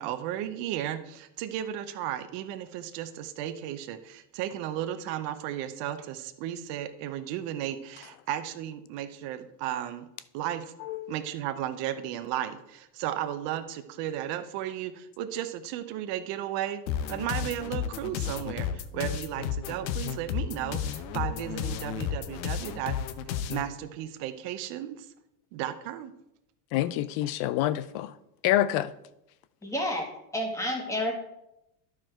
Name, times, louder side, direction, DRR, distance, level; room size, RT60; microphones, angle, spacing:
voice 1, 0.0-10.1 10.3-10.7 11.1-16.8 17.1-23.0 23.5-25.1 25.5-26.1, right 11 dB, 55° right, 0.9 m, -34 dB
voice 2, 10.8-11.1 26.7-28.1 28.4-28.9, left 13 dB, 50° left, 0.5 m, -27 dB
sound 1, 16.9-23.7, left 8 dB, 90° left, 0.9 m, -32 dB
voice 3, 29.6-30.1 30.3-31.1, left 1 dB, 5° left, 1.9 m, -29 dB
11.5 x 4.8 x 4.4 m
supercardioid pair, 120°, 50 cm